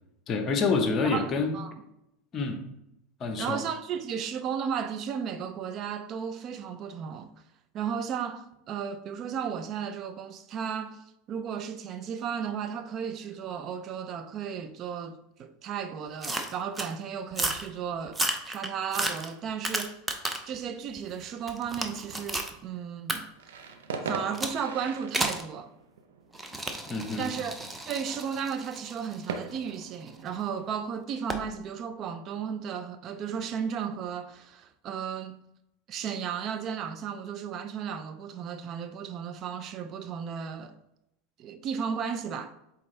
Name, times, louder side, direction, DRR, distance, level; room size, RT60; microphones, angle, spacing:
voice 1, 0.3-1.6 2.3-2.6 3.2-3.6 26.9-27.3, left 4 dB, 35° left, 1.0 m, -27 dB
voice 2, 1.0-1.7 3.4-7.3 7.7-20.0 20.5-23.3 24.0-25.7 27.2-27.5 27.9-35.4 35.9-40.8 41.4-42.5, right 7 dB, 45° right, 0.5 m, -34 dB
sound 1, 16.2-16.9 17.3-17.7 18.1-20.6 21.0-22.5 23.1-23.2 24.3-24.6 25.1-25.5 26.3-30.3 31.3-31.5, right 1 dB, 10° right, 0.8 m, -33 dB
sound 2, 23.4-31.0, right 4 dB, 85° right, 0.7 m, -41 dB
8.2 x 3.7 x 3.3 m
hypercardioid pair, 105°, 0 cm